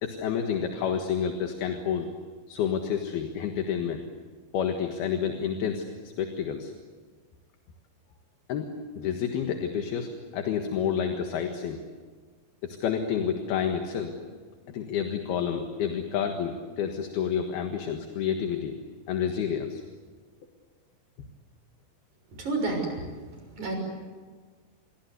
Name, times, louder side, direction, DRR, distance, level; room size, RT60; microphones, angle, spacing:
voice 1, 0.0-2.1 2.5-4.0 4.5-5.8 6.2-6.7 8.5-8.7 9.0-11.8 12.6-14.2 14.7-18.8 19.1-19.8, left 8 dB, 75° left, 4 dB, 3.5 m, -29 dB
voice 2, 22.4-23.1 23.6-23.8, right 3 dB, 50° right, 3 dB, 7.5 m, -29 dB
29.5 x 22.5 x 8.2 m, 1.5 s
omnidirectional pair, 4.6 m